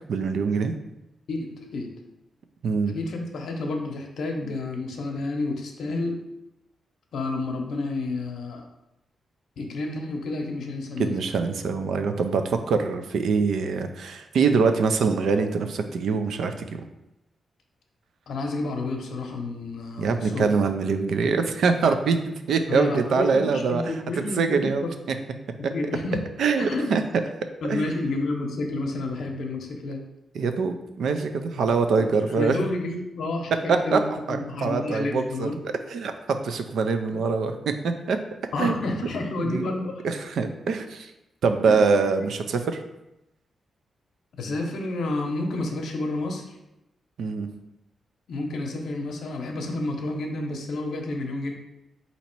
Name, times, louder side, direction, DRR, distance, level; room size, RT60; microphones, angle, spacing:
voice 1, 0.1-0.7 2.6-2.9 11.0-16.8 20.0-23.8 24.4-24.8 26.4-27.0 27.7-27.9 30.3-32.6 33.7-34.0 34.3-35.5 35.9-38.2 38.6-38.8 39.4-39.7 40.0-41.1 41.4-42.8 47.2-47.5, right 5 dB, 75° right, 7 dB, 0.4 m, -24 dB
voice 2, 1.3-1.9 2.9-6.2 7.1-8.7 9.6-11.2 18.3-20.5 22.7-24.7 25.7-26.2 26.6-27.0 27.6-30.0 31.9-34.0 34.3-35.5 37.1-37.2 38.5-40.1 41.7-41.8 44.4-46.6 48.3-51.5, left 2 dB, 75° left, 2 dB, 0.7 m, -30 dB
4.1 x 2.8 x 4.4 m, 0.90 s
wide cardioid pair, 140°, 0 cm